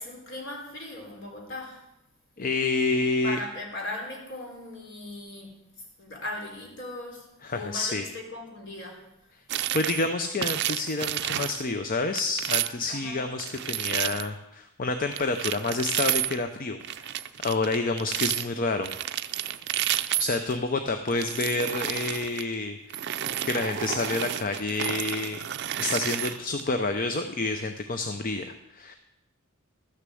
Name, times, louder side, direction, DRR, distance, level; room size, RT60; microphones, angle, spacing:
voice 1, 0.0-1.8 2.9-5.6 6.0-9.0 12.9-13.3, left 2 dB, 60° left, 0 dB, 3.4 m, -38 dB
voice 2, 2.4-3.4 7.4-8.1 9.7-18.9 20.2-23.1 23.4-25.4 25.8-29.0, left 3 dB, 40° left, 7 dB, 0.6 m, -29 dB
sound 1, 9.5-10.1 10.4-11.6 12.2-12.9 13.4-14.3 15.1-16.4 16.8-18.5 18.8-20.5 21.1-22.4 22.9-26.6, right 12 dB, 50° right, 0.5 m, -30 dB
13.0 x 6.7 x 7.7 m, 0.88 s
head